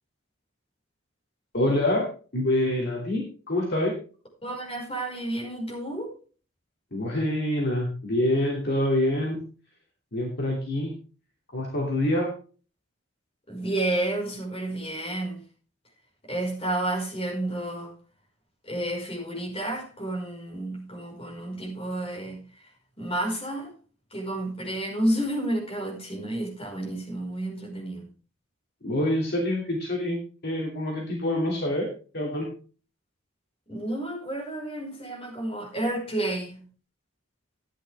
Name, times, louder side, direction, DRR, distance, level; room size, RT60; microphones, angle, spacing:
voice 1, 1.5-2.1 2.3-3.9 6.9-9.4 10.1-10.9 11.5-12.3 28.8-30.2 30.4-31.9 32.1-32.5, left 1 dB, 55° left, 3.0 m, -26 dB
voice 2, 4.4-6.1 13.5-15.4 16.3-17.9 18.6-22.4 23.0-23.7 24.1-28.1 33.7-36.6, right 1 dB, 30° left, 5.3 m, -30 dB
14.0 x 10.0 x 3.6 m
head